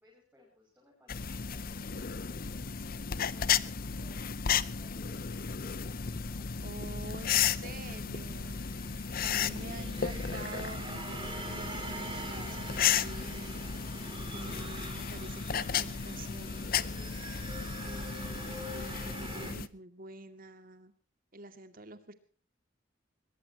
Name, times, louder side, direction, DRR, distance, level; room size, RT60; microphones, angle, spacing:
voice 1, 0.0-2.5 3.1-4.4 4.8-7.0, left 1 dB, 10° right, -3 dB, 6.7 m, -62 dB
sound 1, 1.1-19.7, left 7 dB, 50° left, 0.7 m, -34 dB
Guitar, 6.2-14.9, equal, 80° right, 5.7 m, -65 dB
voice 2, 6.6-8.6 9.2-13.6 14.3-16.8 17.8-20.9 21.3-22.1, right 2 dB, 50° right, 9 dB, 2.3 m, -48 dB
sound 2, 8.2-19.5, right 2 dB, 25° right, 4.3 m, -45 dB
22.0 x 21.5 x 3.0 m, 0.40 s
head